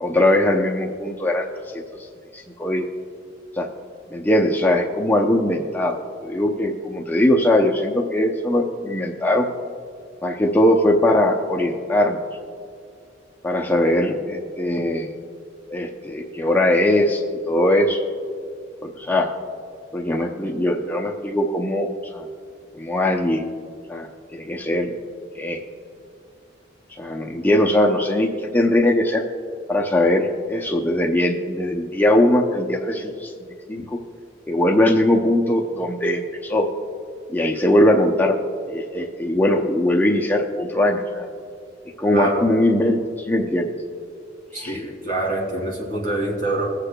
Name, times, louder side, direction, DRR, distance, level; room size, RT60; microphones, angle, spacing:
voice 1, 0.0-1.5 1.7-2.1 2.3-2.9 3.5-3.7 4.1-9.5 10.2-12.2 13.4-15.1 15.7-18.0 18.8-19.3 19.9-21.9 22.1-22.3 22.7-23.5 23.9-24.9 25.3-25.6 27.0-29.2 29.7-33.3 33.7-34.0 34.5-36.7 37.3-38.4 38.7-41.3 42.0-43.7 44.5-44.8, left 1 dB, 10° left, 1 dB, 0.5 m, -20 dB
voice 2, 42.1-42.4 44.5-46.7, right 2 dB, 55° right, -2 dB, 2.7 m, -25 dB
21.0 x 8.2 x 2.2 m, 2.3 s
head